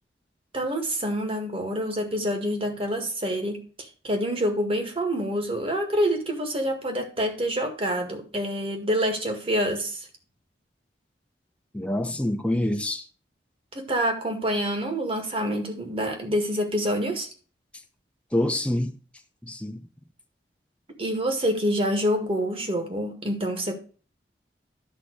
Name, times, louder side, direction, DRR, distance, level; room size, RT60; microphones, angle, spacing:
voice 1, 0.5-3.6 4.0-10.1 13.7-17.3 21.0-23.7, equal, 35° right, 1.8 m, -27 dB
voice 2, 11.7-13.0 18.3-18.9 19.4-19.8, left 1 dB, 5° left, 0.9 m, -26 dB
11.5 x 3.9 x 6.4 m
head